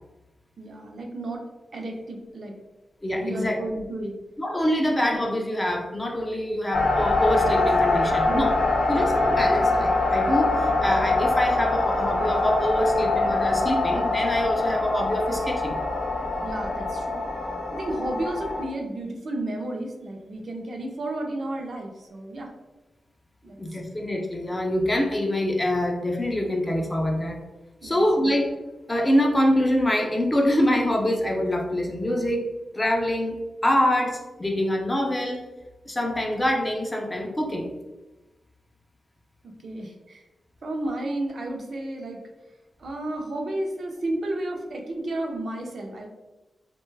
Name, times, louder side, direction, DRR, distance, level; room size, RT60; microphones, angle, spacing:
voice 1, 0.6-1.4 1.7-2.5 3.1-4.2 8.3-8.5 16.4-17.2 17.7-22.5 23.4-23.6 27.8-28.0 39.4-40.2 40.6-42.2 42.8-46.1, right 1 dB, 50° right, 1 dB, 0.5 m, -32 dB
voice 2, 3.0-3.6 4.4-8.5 8.9-15.8 23.6-27.4 27.8-28.5 28.9-32.5 32.7-35.4 35.9-37.7, left 1 dB, 15° left, 2 dB, 0.3 m, -25 dB
sound 1, 6.7-18.6, left 2 dB, 50° left, 0.6 m, -24 dB
3.0 x 2.2 x 3.2 m, 1.1 s
wide cardioid pair, 160°, 0 cm